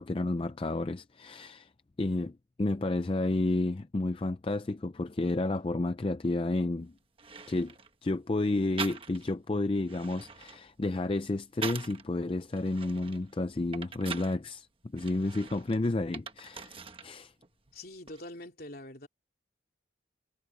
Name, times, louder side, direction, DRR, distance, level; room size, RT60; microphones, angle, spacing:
voice 1, 0.0-1.7 2.0-6.9 7.5-7.7 8.0-14.7 14.9-17.3, left 2 dB, 30° left, 0.4 m, -31 dB
sound 1, 6.7-6.8 7.2-7.9 8.8-9.4 9.8-12.0 12.5-14.4 15.0-17.1 17.4-18.2, right 5 dB, 30° right, 1.2 m, -43 dB
voice 2, 17.7-19.1, left 1 dB, 50° left, 3.4 m, -44 dB
head